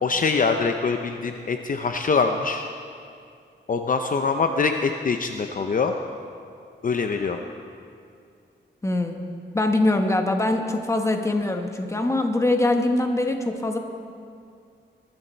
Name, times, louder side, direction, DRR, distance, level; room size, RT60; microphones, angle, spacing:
voice 1, 0.0-2.6 3.7-5.9 6.8-7.4, left 4 dB, 45° left, 5 dB, 0.7 m, -24 dB
voice 2, 8.8-9.1 9.5-13.8, left 2 dB, 15° left, 5 dB, 1.2 m, -23 dB
22.0 x 12.5 x 4.5 m, 2.3 s
wide cardioid pair, 140°, 19 cm